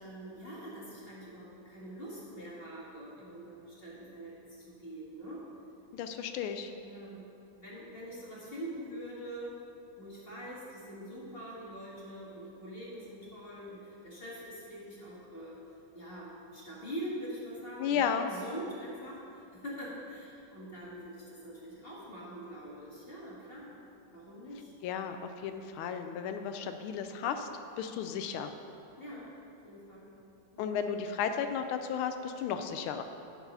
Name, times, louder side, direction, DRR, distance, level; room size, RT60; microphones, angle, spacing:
voice 1, 0.0-5.4 6.8-9.6 10.0-15.6 15.9-23.7 24.1-24.7 29.0-29.3 29.6-30.1 30.5-30.7, equal, 30° left, -7 dB, 2.0 m, -44 dB
voice 2, 5.9-6.7 17.8-18.3 24.8-27.5 27.8-28.5 30.6-33.0, left 7 dB, 90° left, 7 dB, 1.4 m, -34 dB
11.0 x 4.7 x 5.5 m, 2.7 s
omnidirectional pair, 2.2 m